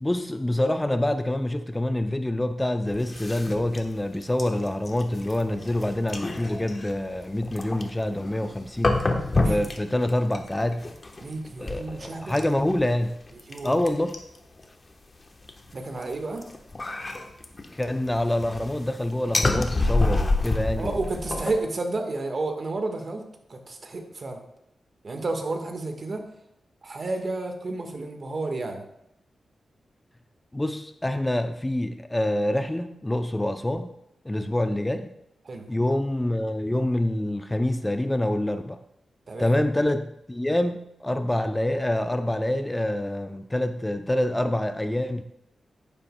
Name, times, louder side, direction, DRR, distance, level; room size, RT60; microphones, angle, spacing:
voice 1, 0.0-9.0 9.4-10.9 11.6-13.2 13.6-14.2 17.7-21.0 30.5-33.9 34.2-35.1 35.7-38.8 39.4-45.2, left 1 dB, 15° left, 8 dB, 0.4 m, -26 dB
sound 1, 2.9-14.6 15.4-21.6, left 2 dB, 35° left, 1.0 m, -29 dB
voice 2, 11.2-12.4 13.5-13.7 15.7-16.4 20.8-24.4 25.0-26.2 26.8-28.8 35.5-35.7 39.3-39.6, right 2 dB, 50° right, 4 dB, 1.4 m, -31 dB
10.5 x 9.9 x 2.2 m, 0.80 s
wide cardioid pair, 90°, 0 cm